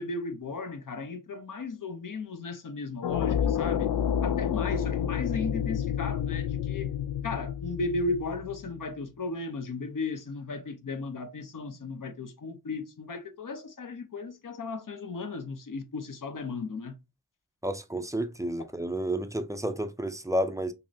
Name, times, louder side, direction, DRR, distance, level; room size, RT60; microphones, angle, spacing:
voice 1, 0.0-3.9 4.2-6.9 7.2-17.0, left 3 dB, 55° left, 0.9 m, -35 dB
sound 1, 3.0-8.9, left 9 dB, 70° left, 0.5 m, -29 dB
voice 2, 17.6-20.7, right 1 dB, 10° right, 0.5 m, -31 dB
5.6 x 2.1 x 2.7 m
cardioid pair, 45°, 39 cm